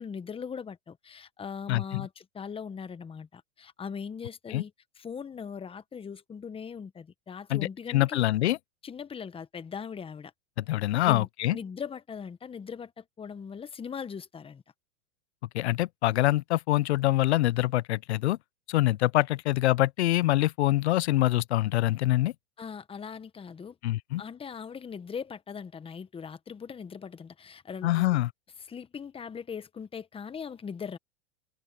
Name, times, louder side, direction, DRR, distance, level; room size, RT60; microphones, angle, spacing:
voice 1, 0.0-8.2 8.8-10.3 11.0-14.6 22.6-23.8 24.2-28.2 28.7-31.0, left 6 dB, 15° left, 1.4 m, -40 dB
voice 2, 1.7-2.1 4.5-4.6 7.5-8.6 10.6-11.6 15.5-18.4 18.7-22.3 23.8-24.2 27.8-28.3, left 16 dB, 75° left, 0.8 m, -25 dB
hypercardioid pair, 110°, 34 cm